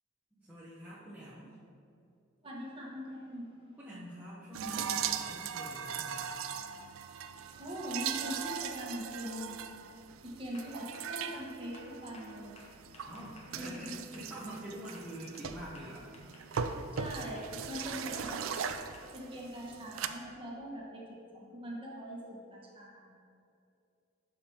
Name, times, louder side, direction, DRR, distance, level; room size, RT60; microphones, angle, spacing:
voice 1, 0.3-1.5 3.8-6.5 13.1-16.1 16.7-16.8, right 1 dB, 10° right, -10 dB, 0.9 m, -46 dB
sound 1, 0.8-1.5 5.8-5.9 7.4-7.7 8.1-8.5 8.9-9.3 9.7-9.9 10.5-14.7 14.9-19.0, left 2 dB, 30° left, 0.9 m, -58 dB
voice 2, 2.4-3.5 7.6-9.8 10.2-12.6 13.6-13.9 17.0-18.5 19.1-23.1, equal, 25° right, -4 dB, 1.3 m, -42 dB
sound 2, 4.5-20.1, right 7 dB, 85° right, 0.4 m, -39 dB
12.0 x 5.2 x 2.9 m, 2.5 s
head